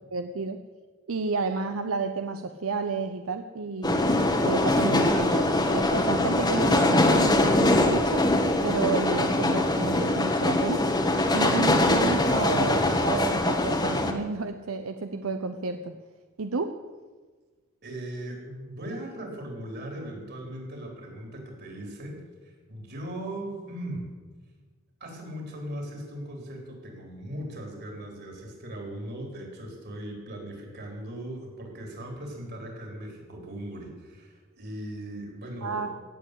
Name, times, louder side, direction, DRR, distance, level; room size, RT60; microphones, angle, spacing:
voice 1, 0.1-0.6 1.1-8.3 8.6-10.8 11.3-15.9 16.4-16.7 35.6-36.0, right 4 dB, 90° right, 8 dB, 0.7 m, -31 dB
sound 1, 3.8-14.1, left 1 dB, 20° left, 1.3 m, -23 dB
voice 2, 17.8-24.1 25.0-36.0, right 1 dB, 55° right, 1 dB, 3.9 m, -38 dB
17.0 x 7.7 x 8.2 m, 1.3 s
head